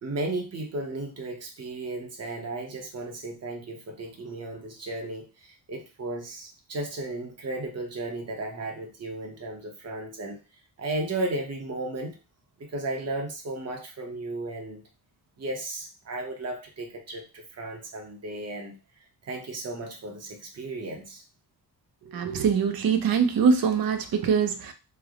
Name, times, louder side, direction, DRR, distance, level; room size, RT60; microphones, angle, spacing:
voice 1, 0.0-10.4 10.8-12.2 12.6-14.8 15.4-18.7 19.2-21.2, right 2 dB, 40° right, 0.8 m, -34 dB
voice 2, 22.1-24.7, right 6 dB, 60° right, 0.5 m, -23 dB
3.3 x 2.0 x 3.6 m
wide cardioid pair, 160°, 40 cm